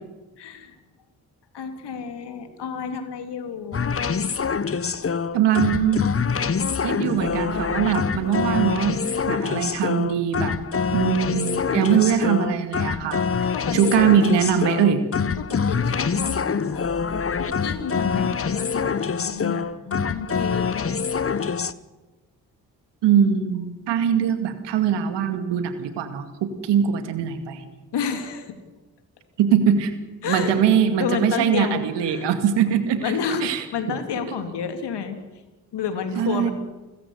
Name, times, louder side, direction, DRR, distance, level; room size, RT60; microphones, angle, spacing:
voice 1, 0.4-0.7 1.5-4.0 13.5-14.1 15.4-16.9 17.3-21.4 27.9-28.6 30.2-30.6 31.0-32.3 33.0-35.2 35.7-36.5, left 6 dB, 70° left, 7 dB, 3.2 m, -30 dB
sound 1, 3.7-21.7, left 6 dB, 30° left, 1.1 m, -25 dB
voice 2, 5.3-6.0 6.8-10.6 10.9-13.2 13.7-15.0 23.0-27.6 29.4-29.9 30.2-33.1 33.4-33.6 36.2-36.5, right 8 dB, 80° right, 9 dB, 2.3 m, -22 dB
29.5 x 14.5 x 8.1 m, 1.2 s
hypercardioid pair, 40°, 42 cm